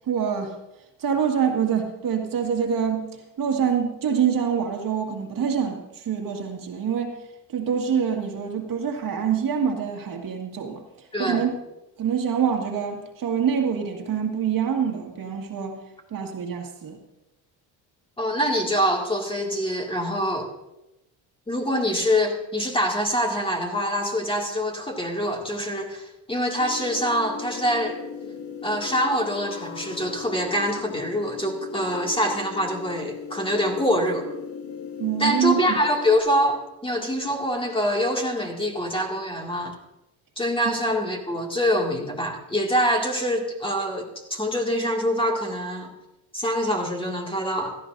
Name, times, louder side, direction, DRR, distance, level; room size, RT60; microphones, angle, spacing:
voice 1, 0.1-0.5 1.0-3.1 3.4-7.2 7.5-10.8 11.2-11.5 12.0-15.8 16.1-17.0 35.0-35.7, right 7 dB, 50° right, 2 dB, 1.9 m, -25 dB
voice 2, 11.1-11.4 18.2-20.5 21.5-28.0 28.6-34.3 35.2-39.7 40.4-45.9 46.3-47.8, equal, 10° left, 1 dB, 2.2 m, -25 dB
sound 1, 26.6-36.2, left 6 dB, 55° left, 2.2 m, -37 dB
17.0 x 13.0 x 2.7 m, 0.92 s
cardioid pair, 105°, 42 cm